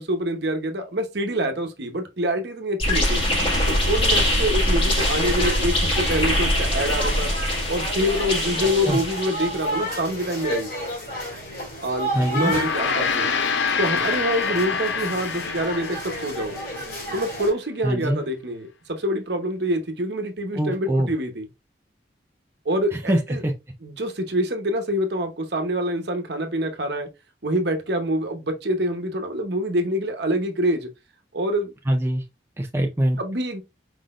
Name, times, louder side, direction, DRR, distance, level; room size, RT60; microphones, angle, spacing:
voice 1, 0.0-3.2 3.7-7.3 7.7-10.7 11.8-13.3 13.8-16.6 17.1-21.5 22.6-23.4 23.8-27.1 27.4-30.9 31.3-31.7 33.2-33.6, equal, 60° right, 0.9 m, -26 dB
sound 1, 2.8-9.8, left 1 dB, 30° left, 1.7 m, -23 dB
sound 2, 5.0-17.5, equal, 50° left, 2.3 m, -32 dB
voice 2, 12.1-12.5 17.8-18.2 20.5-21.1 22.9-23.5 31.9-32.2 32.6-33.2, right 1 dB, 15° right, 0.4 m, -23 dB
Gong, 12.3-16.9, left 5 dB, 70° left, 0.6 m, -26 dB
4.9 x 3.9 x 2.4 m
head